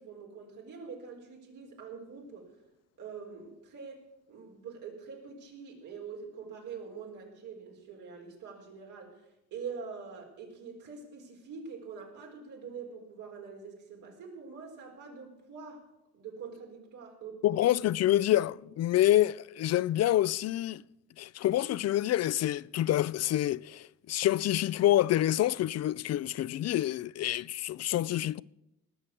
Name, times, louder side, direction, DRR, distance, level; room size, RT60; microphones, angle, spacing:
voice 1, 0.0-2.5 3.0-9.2 9.5-15.9 16.1-17.6, right 5 dB, 80° right, 4.1 m, -45 dB
voice 2, 17.4-20.8 21.2-28.4, left 13 dB, 60° left, 0.4 m, -27 dB
19.0 x 6.5 x 8.4 m
cardioid pair, 90°, 30 cm